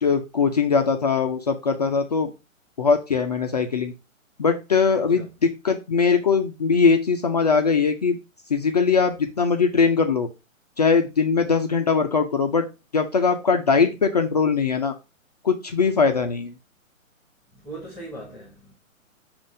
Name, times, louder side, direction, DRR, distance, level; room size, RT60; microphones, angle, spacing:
voice 1, 0.0-2.3 2.8-3.9 4.4-8.2 8.5-10.3 10.8-12.7 12.9-14.9 15.4-16.5, left 5 dB, 30° left, 0.5 m, -21 dB
voice 2, 4.9-5.3 16.1-16.2 17.6-18.7, right 1 dB, ahead, 1.1 m, -39 dB
7.2 x 2.5 x 5.4 m
hypercardioid pair, 145°, 41 cm